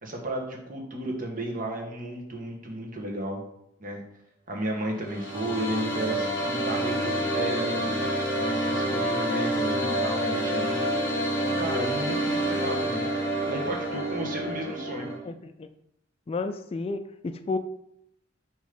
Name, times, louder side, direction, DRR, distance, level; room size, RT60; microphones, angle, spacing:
voice 1, 0.0-3.4 3.8-4.0 4.5-10.9 11.4-13.1 13.5-15.1, right 1 dB, 45° right, 0 dB, 1.3 m, -33 dB
sound 1, 4.9-15.2, right 1 dB, 15° left, 1.8 m, -28 dB
voice 2, 15.2-15.7 16.3-17.6, left 3 dB, 30° left, 9 dB, 0.3 m, -32 dB
6.6 x 3.1 x 5.2 m, 0.78 s
head